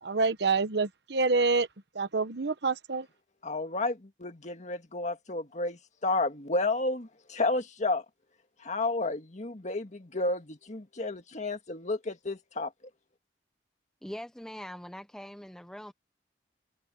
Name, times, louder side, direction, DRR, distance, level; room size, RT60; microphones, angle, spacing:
voice 1, 0.0-1.7 1.9-3.1, right 4 dB, 70° right, 1.2 m, -27 dB
voice 2, 3.4-8.0 8.6-12.7, left 2 dB, 45° left, 1.9 m, -31 dB
voice 3, 14.0-15.9, equal, 5° left, 0.8 m, -42 dB
head